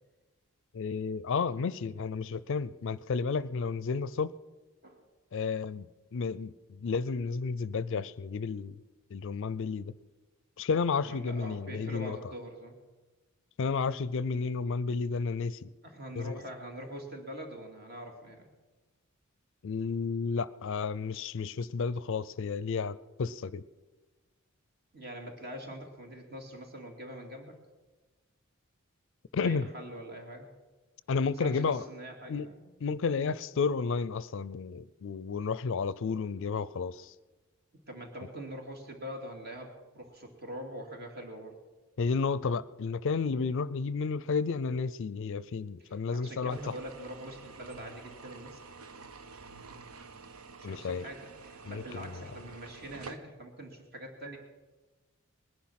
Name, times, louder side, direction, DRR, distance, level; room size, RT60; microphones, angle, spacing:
voice 1, 0.7-4.3 5.3-5.9 6.1-8.8 9.1-9.9 10.6-12.2 13.6-15.7 16.2-16.4 19.6-23.6 29.3-29.7 31.1-31.8 32.3-32.5 32.8-37.1 42.0-46.7 50.6-51.0 51.7-52.2, left 5 dB, 60° left, 18 dB, 0.4 m, -32 dB
voice 2, 11.0-12.8 15.8-18.5 24.9-27.6 29.4-30.5 31.3-32.7 37.9-41.6 45.8-48.6 50.6-54.4, right 1 dB, 50° right, 3 dB, 2.5 m, -44 dB
sound 1, 46.5-53.2, right 4 dB, 85° right, 0.9 m, -49 dB
20.0 x 10.5 x 5.8 m, 1.2 s
head